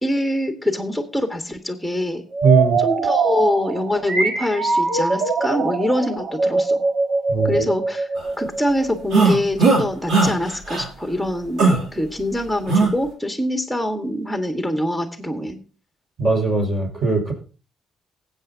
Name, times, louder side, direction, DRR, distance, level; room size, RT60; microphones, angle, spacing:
voice 1, 0.0-2.2 2.8-6.8 7.4-8.1 8.4-15.6, left 1 dB, 5° right, 5 dB, 1.6 m, -24 dB
sound 1, 2.3-9.0, right 4 dB, 65° right, 1.7 m, -22 dB
voice 2, 2.4-2.8 7.3-7.7 16.2-17.3, right 3 dB, 40° right, 1 dB, 5.2 m, -19 dB
sound 2, 9.1-9.8 10.1-10.3 10.7-10.8 11.6-11.8 12.7-12.9, right 3 dB, 80° right, 2.8 m, -16 dB
19.5 x 8.0 x 2.8 m, 0.36 s
cardioid pair, 90°, 0 cm